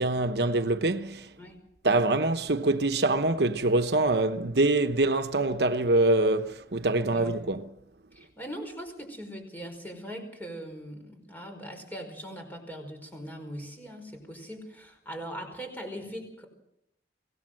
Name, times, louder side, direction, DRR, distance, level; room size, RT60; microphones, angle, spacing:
voice 1, 0.0-1.3 1.8-7.7, right 2 dB, 70° right, 1.0 m, -25 dB
voice 2, 7.0-7.3 8.1-16.5, equal, 10° left, 5.1 m, -41 dB
24.5 x 18.0 x 7.7 m
head